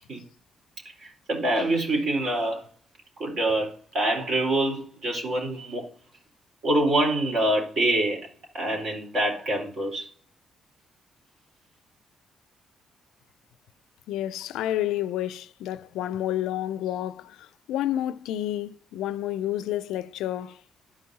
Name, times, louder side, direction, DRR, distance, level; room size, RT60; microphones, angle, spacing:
voice 1, 1.0-2.6 3.2-5.9 6.6-8.3 8.5-10.1, right 1 dB, 60° right, 4.0 m, -25 dB
voice 2, 14.1-20.6, left 12 dB, 90° left, 0.4 m, -30 dB
12.5 x 5.5 x 2.8 m
cardioid pair, 90°, 0 cm